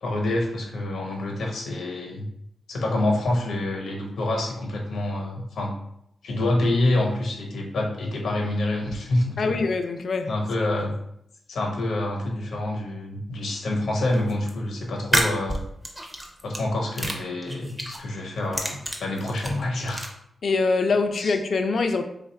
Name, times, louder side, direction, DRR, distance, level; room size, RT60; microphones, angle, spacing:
voice 1, 0.0-2.3 2.7-5.7 6.2-9.6 10.3-10.9 11.5-15.6 16.4-20.0 21.2-21.3, left 1 dB, 85° left, 1 dB, 0.9 m, -27 dB
voice 2, 9.4-10.3 20.4-22.0, left 4 dB, 50° left, 7 dB, 0.4 m, -23 dB
sound 1, 14.1-14.5 15.0-16.6 16.9-18.0 18.4-20.1, equal, 10° right, 0.5 m, -28 dB
3.2 x 2.4 x 4.3 m, 0.77 s
wide cardioid pair, 170°, 0 cm